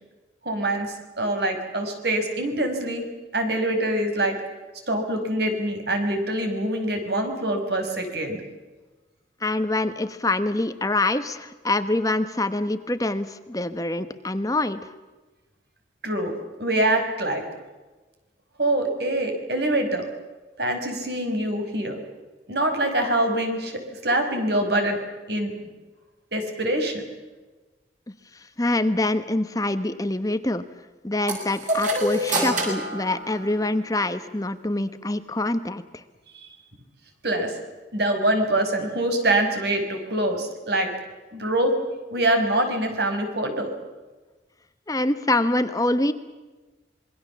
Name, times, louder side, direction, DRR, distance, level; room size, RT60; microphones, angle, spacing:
voice 1, 0.4-4.4 4.9-8.4 16.0-16.3 16.6-17.4 18.6-20.1 20.6-22.0 22.5-25.0 25.3-25.5 26.3-27.0 37.2-37.5 37.9-40.9 41.3-41.7 42.1-43.7, right 1 dB, 65° right, 5 dB, 5.4 m, -24 dB
voice 2, 9.4-14.9 28.3-30.6 31.0-36.0 44.9-46.1, left 2 dB, 20° left, 10 dB, 1.1 m, -25 dB
Clock (Cuckoo) - Chime half hour, 31.3-34.0, right 1 dB, 45° right, 7.5 m, -27 dB
27.0 x 22.5 x 7.2 m, 1.2 s
head